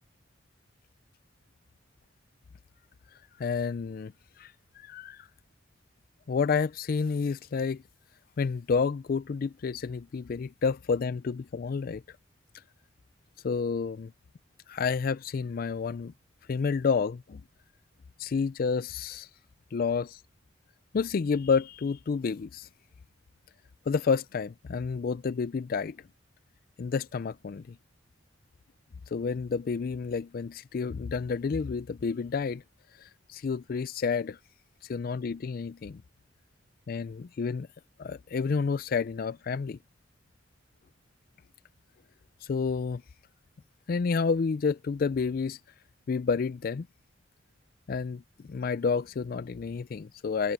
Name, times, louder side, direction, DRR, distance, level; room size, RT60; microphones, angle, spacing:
voice 1, 3.4-4.1 4.4-5.3 6.3-7.8 8.4-12.0 13.4-14.1 14.7-16.1 16.5-17.4 18.2-19.3 19.7-20.2 20.9-22.7 23.9-26.0 26.8-27.8 29.1-32.6 33.0-34.4 34.8-36.0 36.9-37.7 38.0-39.8 42.4-43.0 43.9-45.6 46.1-46.9 47.9-48.2 48.5-50.5, left 5 dB, 50° left, 0.4 m, -30 dB
head